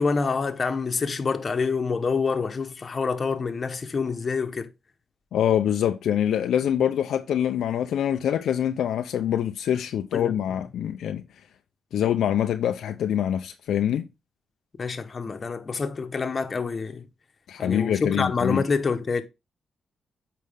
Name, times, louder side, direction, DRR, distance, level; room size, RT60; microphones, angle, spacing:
voice 1, 0.0-4.7 10.1-10.3 14.8-17.0 17.6-19.2, left 4 dB, 45° left, 1.2 m, -27 dB
voice 2, 5.3-11.2 11.9-14.1 17.5-18.6, left 10 dB, 80° left, 0.6 m, -25 dB
8.4 x 5.2 x 3.5 m
cardioid pair, 65°, 0 cm